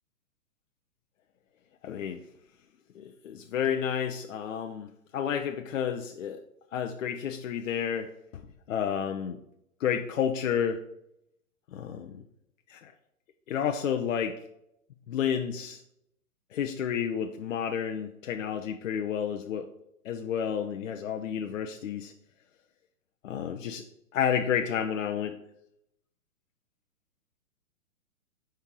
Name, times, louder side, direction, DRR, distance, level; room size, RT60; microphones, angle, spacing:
voice 1, 1.8-2.2 2.9-6.4 6.7-8.4 8.7-9.4 9.8-10.8 11.7-12.2 12.7-12.9 13.5-14.4 15.1-15.8 16.5-19.7 20.0-22.1 23.2-23.8 24.1-25.4, left 8 dB, 60° left, 5 dB, 0.7 m, -31 dB
5.2 x 4.5 x 4.7 m, 0.78 s
hypercardioid pair, 120°, 43 cm